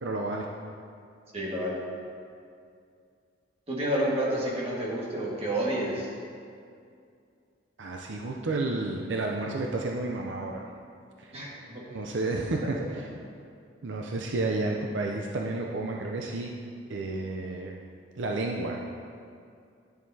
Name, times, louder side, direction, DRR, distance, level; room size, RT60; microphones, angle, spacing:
voice 1, 0.0-0.5 7.8-10.7 11.2-11.3 11.9-13.1 13.8-16.5 16.9-17.7 18.1-18.8, right 2 dB, 75° right, 0 dB, 0.5 m, -31 dB
voice 2, 1.3-1.8 3.7-6.1 11.3-11.8 12.9-13.0, right 1 dB, 30° right, -5 dB, 1.6 m, -29 dB
10.5 x 7.5 x 2.8 m, 2.3 s
head